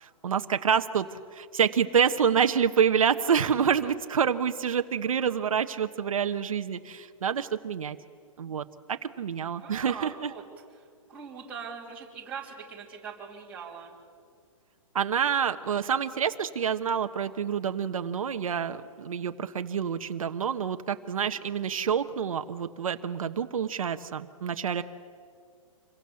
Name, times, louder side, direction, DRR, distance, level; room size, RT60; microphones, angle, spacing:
voice 1, 0.0-8.0 8.4-10.3 14.9-24.8, right 7 dB, 75° right, 8 dB, 1.3 m, -27 dB
voice 2, 3.5-3.9 9.4-10.4 11.1-13.9, right 6 dB, 10° right, -5 dB, 3.3 m, -42 dB
27.0 x 23.5 x 7.1 m, 2.1 s
hypercardioid pair, 180°, 18 cm